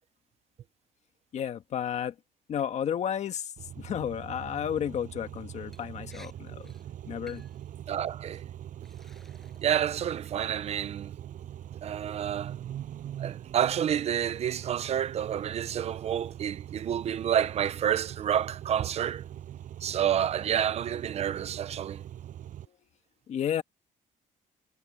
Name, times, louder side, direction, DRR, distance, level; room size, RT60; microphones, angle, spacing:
voice 1, 1.3-2.1 2.5-6.7 7.0-7.4 23.3-23.6, left 9 dB, 50° left, 1.6 m, -32 dB
Car / Idling / Accelerating revving vroom, 3.6-22.7, right 11 dB, 65° right, 7.1 m, -42 dB
Liquid, 5.7-5.8 6.1-6.3 6.6-6.9 7.3-7.6 8.3-8.4 8.8-9.7 10.1-10.6, equal, ahead, 6.8 m, -56 dB
voice 2, 7.9-8.4 9.6-11.2 11.8-12.6 13.2-19.2 19.8-22.0, right 9 dB, 45° right, 0.6 m, -29 dB
cardioid pair, 165°, 15 cm